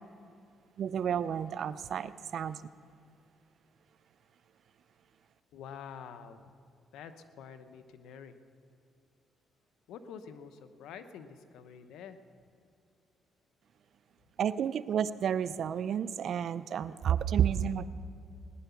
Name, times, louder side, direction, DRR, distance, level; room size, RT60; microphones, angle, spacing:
voice 1, 0.8-2.6 14.4-17.9, right 8 dB, 65° right, 15 dB, 0.5 m, -31 dB
voice 2, 5.5-6.5 6.9-8.3 9.9-12.2, left 7 dB, 85° left, 9 dB, 0.9 m, -47 dB
18.5 x 10.5 x 7.0 m, 2.4 s
cardioid pair, 90°, 0 cm